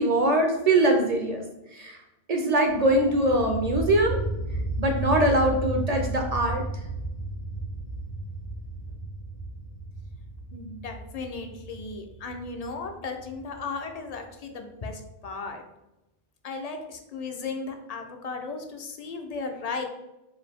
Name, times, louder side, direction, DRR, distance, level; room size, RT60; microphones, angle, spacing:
voice 1, 0.0-1.4 1.7-2.0 2.3-4.2 4.8-6.6, right 1 dB, 50° right, 3 dB, 0.5 m, -22 dB
sound 1, 2.7-14.2, right 2 dB, 80° left, 1.4 m, -34 dB
voice 2, 10.5-15.6 16.4-19.8, left 4 dB, 50° left, 4 dB, 0.5 m, -36 dB
4.7 x 2.6 x 3.4 m, 0.96 s
omnidirectional pair, 1.1 m